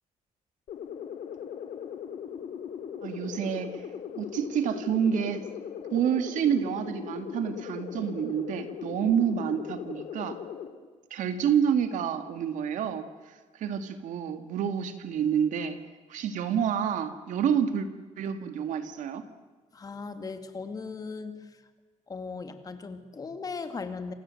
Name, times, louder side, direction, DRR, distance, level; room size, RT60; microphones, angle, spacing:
sound 1, 0.7-10.7, left 8 dB, 70° left, 3.0 m, -39 dB
voice 1, 3.0-3.9 4.1-5.4 5.9-10.4 11.1-15.8 16.1-17.9 18.2-19.3, right 8 dB, 75° right, 8 dB, 2.2 m, -28 dB
voice 2, 19.7-21.6 22.1-24.1, left 4 dB, 30° left, 8 dB, 2.2 m, -38 dB
27.5 x 27.0 x 7.8 m, 1.4 s
cardioid pair, 150°, 13 cm